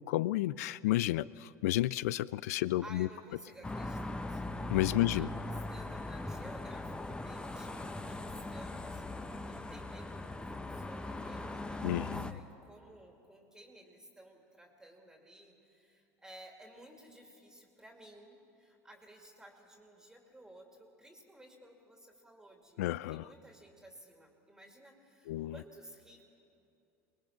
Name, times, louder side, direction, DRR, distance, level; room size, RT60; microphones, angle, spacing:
voice 1, 0.0-3.1 4.7-5.3 11.8-12.4 22.8-23.3 25.3-25.6, left 15 dB, 75° left, 21 dB, 0.4 m, -31 dB
voice 2, 2.8-4.6 4.9-26.3, right 1 dB, 5° right, 2 dB, 2.6 m, -55 dB
sound 1, 3.6-12.3, left 2 dB, 10° left, 1.0 m, -40 dB
23.0 x 20.5 x 5.9 m, 2.7 s
hypercardioid pair, 85°, 8 cm